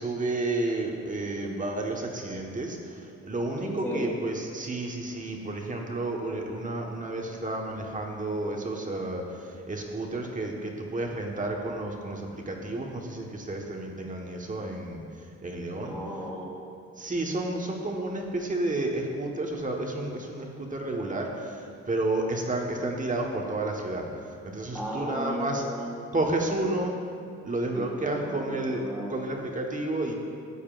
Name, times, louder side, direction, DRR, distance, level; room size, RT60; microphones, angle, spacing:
voice 1, 0.0-15.0 15.4-15.9 17.0-24.1 24.4-25.6 26.1-26.9 27.4-28.8 29.1-30.1, right 2 dB, 25° right, 0 dB, 1.3 m, -31 dB
voice 2, 3.6-4.1 15.7-16.6 24.7-26.1 26.6-26.9 27.7-29.3, equal, 5° left, -5 dB, 1.9 m, -36 dB
14.0 x 8.4 x 2.5 m, 2.4 s
cardioid pair, 90°, 30 cm